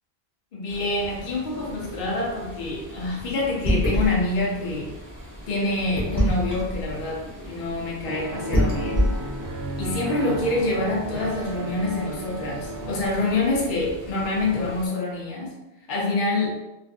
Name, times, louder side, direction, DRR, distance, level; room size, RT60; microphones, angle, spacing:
voice 1, 0.5-4.9 5.5-9.2 9.8-15.5 15.9-16.6, left 2 dB, 55° left, -3 dB, 0.7 m, -26 dB
sound 1, 0.7-14.9, equal, 20° left, 1.0 m, -31 dB
sound 2, 8.0-13.1, right 1 dB, 65° right, 0.7 m, -33 dB
2.5 x 2.4 x 2.4 m, 0.97 s
omnidirectional pair, 1.1 m